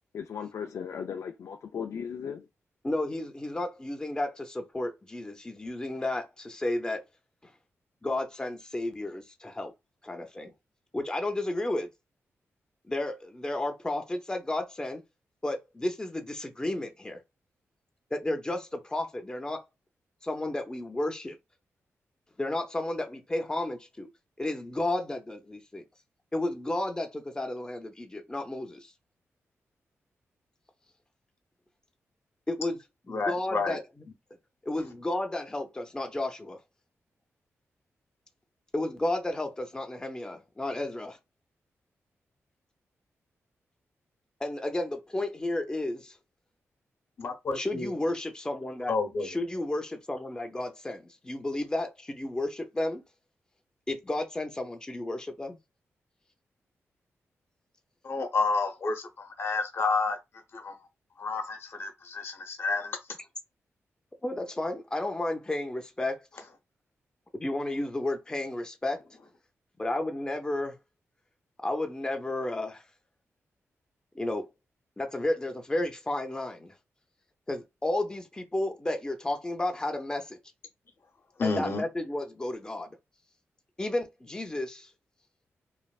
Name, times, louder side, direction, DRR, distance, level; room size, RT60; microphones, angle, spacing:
voice 1, 0.1-2.4, left 7 dB, 70° left, 0.3 m, -36 dB
voice 2, 2.8-7.0 7.4-7.5 8.0-9.7 10.0-10.5 10.9-11.9 12.9-15.0 15.4-17.2 18.1-19.6 20.2-21.4 22.4-24.1 24.4-25.8 26.3-28.9 32.5-32.8 33.1-33.8 34.6-36.6 38.7-41.2 44.4-46.2 47.5-48.9 49.2-53.0 53.9-55.6 64.2-66.3 67.3-69.0 69.8-70.8 71.6-72.8 74.1-74.5 75.0-76.7 77.5-80.4 81.4-82.9 83.8-84.9, left 1 dB, 15° left, 0.6 m, -32 dB
voice 3, 33.1-33.8 47.2-47.9 48.9-49.4 58.0-60.2 60.5-60.7 61.2-63.0 81.4-81.8, left 4 dB, 55° left, 0.8 m, -30 dB
3.1 x 2.5 x 2.3 m
cardioid pair, 95°, 5 cm